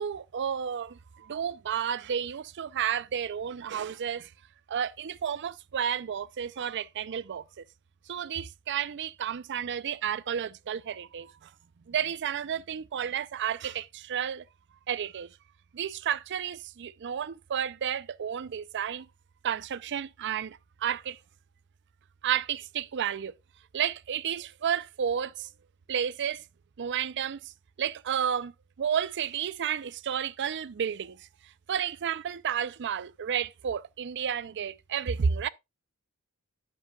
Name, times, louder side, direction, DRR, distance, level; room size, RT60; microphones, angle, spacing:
voice 1, 0.0-4.3 4.7-7.6 8.1-11.5 11.9-14.4 14.9-15.3 15.7-19.1 19.4-21.2 22.2-23.3 23.7-25.5 25.9-26.4 26.8-27.5 27.8-28.5 28.8-31.3 31.7-35.5, right 8 dB, 55° right, 0.4 m, -31 dB
11.0 x 7.5 x 2.3 m
head